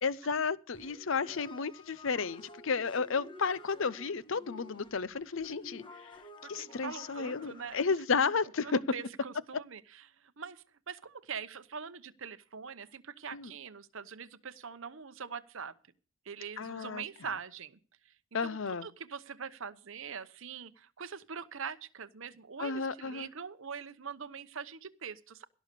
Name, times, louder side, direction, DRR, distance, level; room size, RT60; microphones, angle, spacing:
voice 1, 0.0-6.1 6.5-8.8 13.3-13.5 16.6-17.0 18.3-18.9 22.6-23.3, left 5 dB, 60° left, 0.6 m, -32 dB
sound 1, 0.7-7.8, left 2 dB, 20° left, 1.3 m, -51 dB
voice 2, 6.5-7.8 8.6-10.0 10.4-15.7 16.3-17.8 18.4-25.4, right 6 dB, 60° right, 0.9 m, -43 dB
17.0 x 6.4 x 6.7 m
head